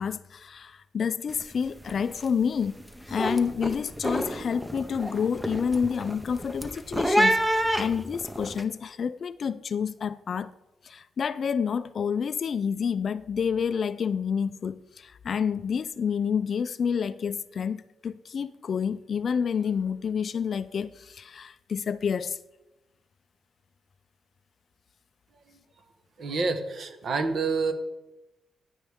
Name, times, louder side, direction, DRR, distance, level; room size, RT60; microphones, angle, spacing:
voice 1, 0.0-2.8 3.1-10.5 10.8-22.4, left 6 dB, 45° left, 0.3 m, -29 dB
sound 1, 1.3-1.6 1.8-2.3 2.7-8.6, equal, 5° right, 0.6 m, -28 dB
voice 2, 26.2-27.7, right 4 dB, 45° right, 1.2 m, -27 dB
16.0 x 10.0 x 3.6 m
wide cardioid pair, 175°, 0 cm